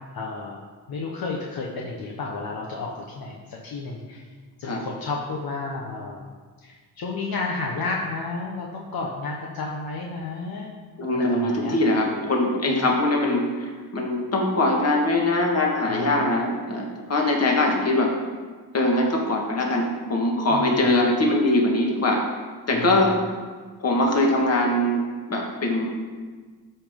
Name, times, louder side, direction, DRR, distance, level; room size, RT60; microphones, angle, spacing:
voice 1, 0.1-0.6 0.9-4.2 4.6-6.3 6.6-10.7 11.1-11.8 12.6-12.9 15.9-16.3 20.5-20.7 22.7-23.1, left 3 dB, 60° left, -1 dB, 1.2 m, -32 dB
voice 2, 11.0-18.1 18.7-22.2 22.7-23.2 23.8-25.0 25.3-25.9, left 1 dB, 40° left, 0 dB, 1.8 m, -22 dB
13.0 x 5.6 x 3.8 m, 1.5 s
cardioid pair, 115°, 39 cm